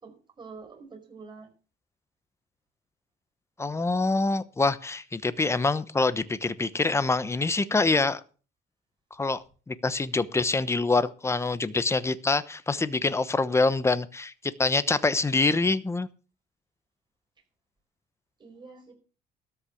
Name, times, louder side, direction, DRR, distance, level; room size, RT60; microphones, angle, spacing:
voice 1, 0.0-1.5 18.4-18.9, right 4 dB, 25° right, 2 dB, 4.8 m, -46 dB
voice 2, 3.6-8.2 9.2-14.3 14.6-16.1, left 3 dB, 15° left, 15 dB, 1.0 m, -25 dB
13.0 x 6.0 x 8.2 m, 0.38 s
cardioid pair, 110°, 17 cm